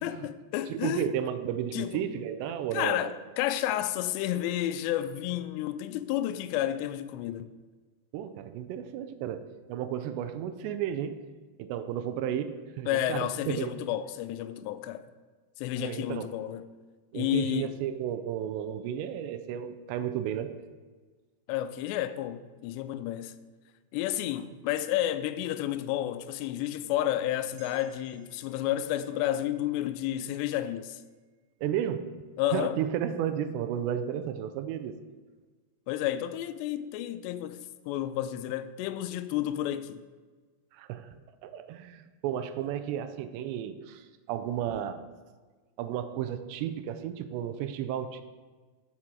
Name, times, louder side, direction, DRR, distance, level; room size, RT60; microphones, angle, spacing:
voice 1, 0.0-1.0 1.7-2.0 2.7-7.5 12.9-15.0 15.6-16.7 17.1-17.7 21.5-23.3 23.9-31.0 32.4-32.8 35.9-37.6 37.9-40.0, left 12 dB, 85° left, 2.6 m, -31 dB
voice 2, 0.7-3.1 8.1-11.2 11.6-13.7 15.8-16.4 17.1-20.5 31.6-32.1 32.5-35.0 40.7-41.1 41.4-45.0 45.8-48.2, right 10 dB, 85° right, 2.7 m, -33 dB
sound 1, 27.6-32.1 32.5-32.6, right 8 dB, 65° right, 2.6 m, -62 dB
8.4 x 7.4 x 4.7 m
omnidirectional pair, 5.0 m